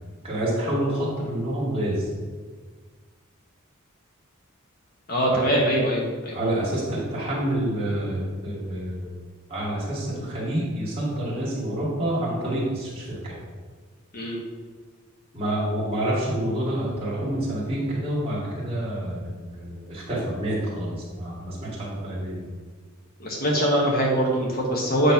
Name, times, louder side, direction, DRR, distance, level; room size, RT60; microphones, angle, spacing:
voice 1, 0.2-2.1 6.3-9.1 9.5-13.4 15.3-22.5, right 1 dB, 25° right, -6 dB, 2.2 m, -28 dB
voice 2, 5.1-6.3 14.1-14.4 23.2-25.1, right 1 dB, 45° left, -2 dB, 1.4 m, -22 dB
8.1 x 3.4 x 5.8 m, 1.4 s
head